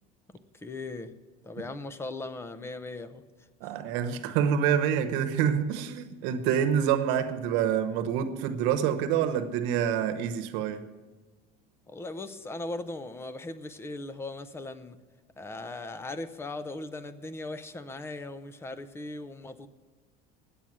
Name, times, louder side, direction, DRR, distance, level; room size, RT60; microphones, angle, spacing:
voice 1, 0.5-1.1 1.4-3.2 11.9-15.0 15.4-19.7, left 2 dB, 10° left, 0.6 m, -38 dB
voice 2, 3.6-10.8, right 8 dB, 70° right, 1.1 m, -27 dB
11.0 x 8.6 x 7.5 m
cardioid pair, 145°, 20 cm